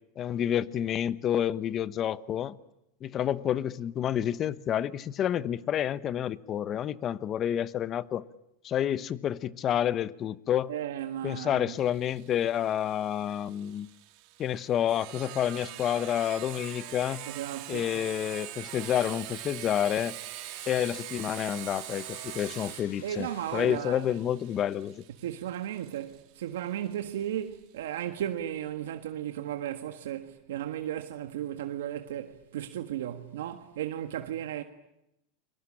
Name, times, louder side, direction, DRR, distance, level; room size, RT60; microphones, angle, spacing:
voice 1, 0.2-2.5 3.0-8.2 8.6-10.7 11.2-13.9 14.4-17.2 17.7-20.1 20.7-23.3 23.5-25.0, left 10 dB, 35° left, 1.0 m, -29 dB
voice 2, 10.7-11.7 17.3-17.9 23.0-24.1 25.2-34.6, right 11 dB, 85° right, 1.6 m, -35 dB
Sawing, 11.8-27.2, right 15 dB, 55° right, 3.5 m, -43 dB
sound 1, 15.6-23.6, left 5 dB, 85° left, 7.7 m, -56 dB
29.0 x 22.5 x 8.7 m
supercardioid pair, 130°, 0 cm